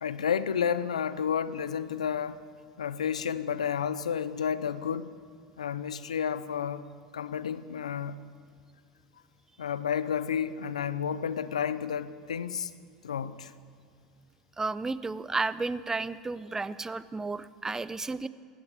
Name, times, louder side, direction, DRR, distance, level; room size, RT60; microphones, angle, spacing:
voice 1, 0.0-2.4 2.8-5.1 5.6-6.9 7.1-8.2 9.6-12.7 13.0-13.5, left 7 dB, 90° left, 15 dB, 0.6 m, -31 dB
voice 2, 14.6-18.3, right 3 dB, 15° right, 16 dB, 0.6 m, -32 dB
16.5 x 11.0 x 7.5 m, 2.2 s
hypercardioid pair, 80°, 3 cm